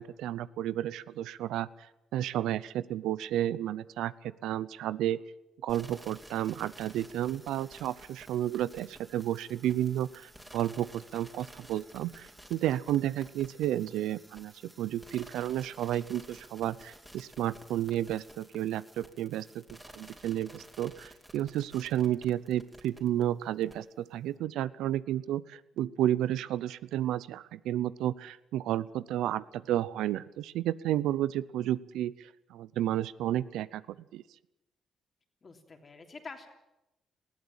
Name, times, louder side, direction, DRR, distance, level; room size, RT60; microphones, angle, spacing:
voice 1, 0.0-5.2 5.6-14.5 14.8-19.6 19.9-33.8 34.1-34.2, right 12 dB, 90° right, 18 dB, 0.6 m, -32 dB
sound 1, 5.7-23.2 23.6-23.7, right 1 dB, 5° right, 3.3 m, -53 dB
voice 2, 35.4-36.5, left 4 dB, 35° left, 5 dB, 3.2 m, -46 dB
20.0 x 14.5 x 8.9 m, 0.94 s
cardioid pair, 90°, 0 cm